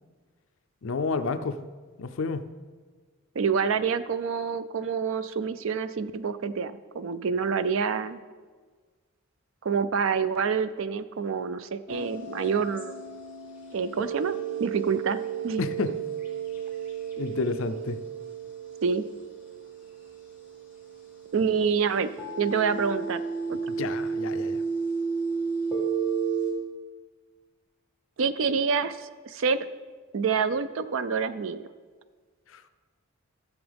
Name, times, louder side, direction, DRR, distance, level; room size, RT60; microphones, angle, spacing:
voice 1, 0.8-1.6 2.0-2.5 15.6-15.9 17.2-18.0 23.7-24.6 32.5-32.6, left 4 dB, 60° left, 10 dB, 0.5 m, -30 dB
voice 2, 3.4-8.2 9.6-12.9 13.7-15.6 18.8-19.0 21.3-22.1 22.4-23.2 23.5-23.7 28.2-29.7 30.1-31.7, right 6 dB, 60° right, 14 dB, 0.4 m, -27 dB
sound 1, 11.9-26.5, right 5 dB, 10° right, 1.9 m, -33 dB
14.0 x 7.0 x 3.5 m, 1.5 s
head